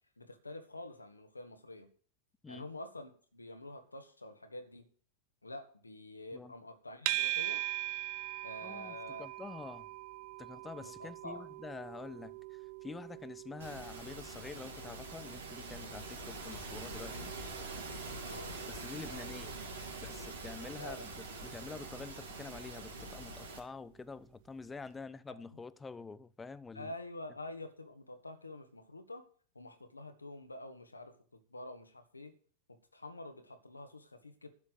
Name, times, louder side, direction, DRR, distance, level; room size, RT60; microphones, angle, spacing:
voice 1, 0.2-1.9 2.5-4.9 5.4-7.6 8.4-9.3 10.8-11.5 18.3-18.5 19.0-19.2 20.8-21.1 25.5-25.6 26.7-29.3 29.6-32.3 32.7-34.5, left 1 dB, 80° left, 1.8 m, -47 dB
sound 1, 7.1-24.3, right 15 dB, 50° right, 0.7 m, -43 dB
voice 2, 8.6-9.9 10.4-17.3 18.7-19.6 20.0-21.1 21.4-26.9, left 4 dB, 15° left, 0.7 m, -47 dB
sound 2, 13.6-23.6, right 2 dB, 70° right, 3.4 m, -44 dB
11.5 x 7.5 x 7.8 m
figure-of-eight pair, 90°, 0 cm